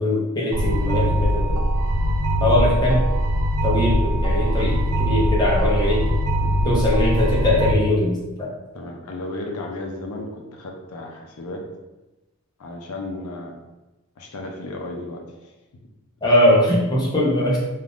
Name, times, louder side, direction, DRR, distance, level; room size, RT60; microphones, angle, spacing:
voice 1, 0.0-1.4 2.4-3.0 3.6-6.0 6.6-8.5 16.2-17.6, left 1 dB, 20° left, -5 dB, 0.6 m, -20 dB
sound 1, 0.5-7.7, equal, 80° right, 0.4 m, -21 dB
voice 2, 8.7-11.6 12.6-13.6 14.2-15.5, left 2 dB, 85° left, 1 dB, 0.5 m, -34 dB
2.4 x 2.4 x 3.4 m, 1.0 s
head